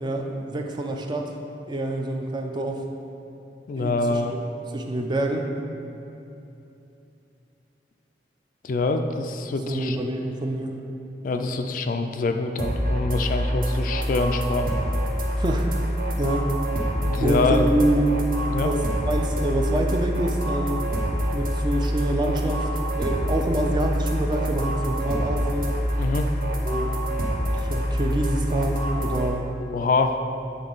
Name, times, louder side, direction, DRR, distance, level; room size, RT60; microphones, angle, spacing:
voice 1, 0.0-1.3 1.7-2.8 3.8-4.4 4.7-5.5 9.7-10.8 15.4-15.7 16.2-16.5 17.2-18.1 18.6-20.9 21.3-22.7 23.0-25.8 26.6-27.0 27.6-29.5, right 1 dB, 25° right, 3 dB, 0.4 m, -26 dB
voice 2, 3.7-4.3 8.6-10.0 11.2-14.7 17.0-17.7 18.5-18.7 26.0-26.3 29.6-30.2, left 3 dB, 50° left, 6 dB, 0.3 m, -25 dB
sound 1, 12.6-29.3, equal, 50° right, 0.8 m, -26 dB
8.0 x 3.8 x 3.9 m, 2.8 s
head